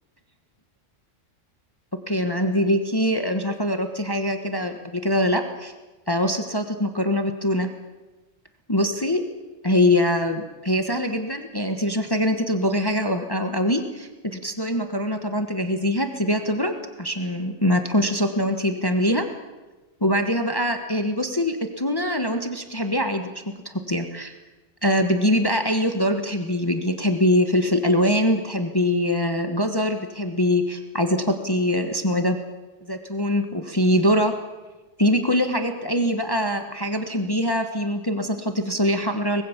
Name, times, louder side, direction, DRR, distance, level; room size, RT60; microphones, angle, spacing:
voice 1, 2.1-5.7 6.1-7.7 8.7-9.2 9.6-19.2 20.0-23.3 23.6-24.3 24.8-32.4 32.8-34.3 35.0-39.4, left 1 dB, 20° left, 6 dB, 1.4 m, -23 dB
24.0 x 20.5 x 7.3 m, 1.2 s
omnidirectional pair, 1.3 m